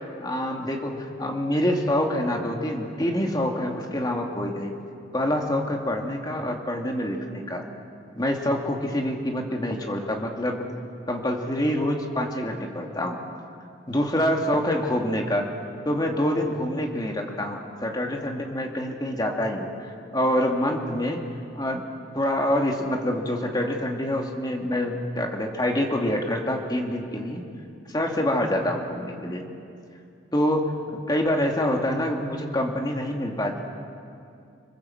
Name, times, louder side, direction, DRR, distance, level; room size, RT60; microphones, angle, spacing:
voice 1, 0.2-4.7 5.1-7.7 8.2-10.7 11.1-13.2 13.9-15.5 15.9-19.7 20.1-21.2 21.5-21.9 22.1-27.4 27.9-29.4 30.3-30.7 31.1-33.6, left 1 dB, 20° left, 1 dB, 2.3 m, -26 dB
26.5 x 21.5 x 7.8 m, 2.5 s
head